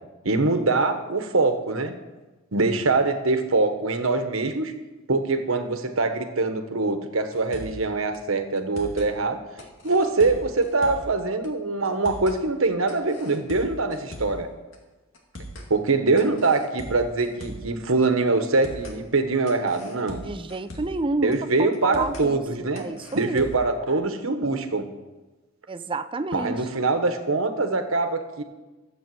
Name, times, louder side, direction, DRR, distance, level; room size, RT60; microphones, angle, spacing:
voice 1, 0.2-2.0 2.5-4.7 5.1-9.4 9.8-14.5 15.7-20.2 21.2-22.9 23.1-24.9 26.3-28.4, right 3 dB, 85° right, 8 dB, 1.2 m, -23 dB
sound 1, 7.3-7.9 8.1-8.2 8.6-9.1 9.6-11.2 11.4-11.5 11.9-12.4 12.9-14.4 14.7-14.8 15.1-15.7 16.2-17.7 18.0-18.1 18.4-19.0 19.5-21.0 21.3-21.4 21.7-22.3 22.8-23.7, equal, 70° left, 2.4 m, -40 dB
voice 2, 20.2-22.4 22.7-23.5 25.7-26.6, right 2 dB, 25° right, 11 dB, 0.5 m, -29 dB
12.5 x 8.0 x 7.7 m, 1.2 s
head